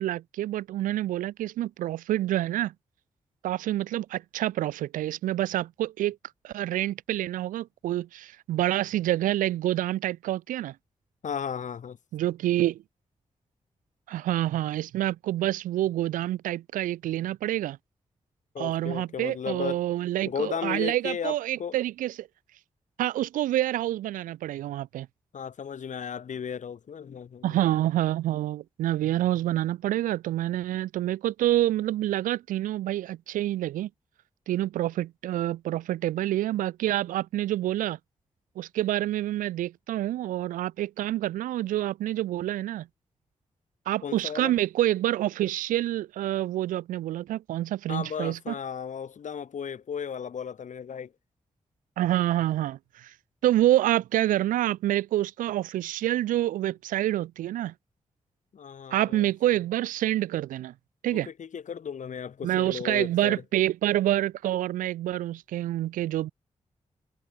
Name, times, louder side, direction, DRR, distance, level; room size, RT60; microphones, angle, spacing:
voice 1, 0.0-2.7 3.4-6.2 6.4-10.7 12.1-12.8 14.1-17.8 18.6-22.3 23.0-25.1 27.4-33.9 34.5-38.0 38.6-42.9 43.9-48.5 52.0-53.1 53.4-57.7 58.9-60.7 61.0-61.3 62.4-66.3, right 14 dB, 85° right, 0.5 m, -27 dB
voice 2, 11.2-12.0 18.5-19.8 20.3-21.8 25.3-27.5 44.0-44.5 47.9-51.1 58.5-59.6 61.1-63.4, left 7 dB, 65° left, 1.9 m, -35 dB
supercardioid pair, 40°, 14 cm